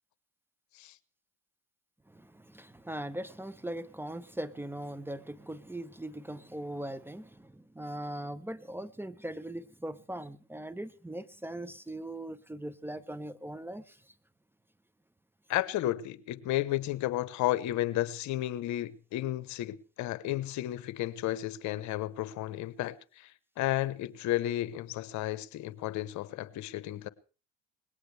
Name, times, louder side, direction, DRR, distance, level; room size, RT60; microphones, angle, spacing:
voice 1, 2.1-14.1, right 1 dB, 5° right, 0.8 m, -40 dB
voice 2, 15.5-27.1, left 14 dB, 60° left, 1.0 m, -33 dB
20.0 x 17.5 x 3.4 m
supercardioid pair, 85°, 32 cm